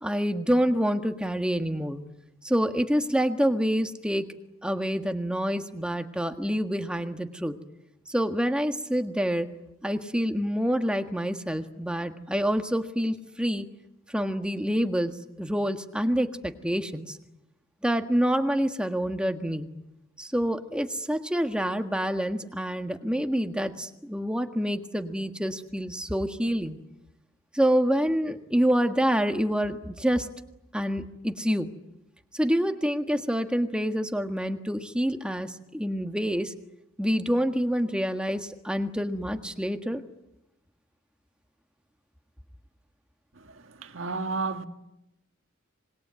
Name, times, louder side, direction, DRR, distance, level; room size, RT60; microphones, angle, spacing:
voice 1, 0.0-2.0 2.4-4.3 4.6-7.6 8.1-9.5 9.8-13.7 14.1-17.2 17.8-19.7 20.2-26.8 27.5-30.3 30.7-31.7 32.3-36.5 37.0-40.0, equal, 5° right, 1.6 m, -27 dB
voice 2, 43.4-44.6, right 4 dB, 80° right, 1.7 m, -32 dB
26.5 x 21.0 x 9.4 m
head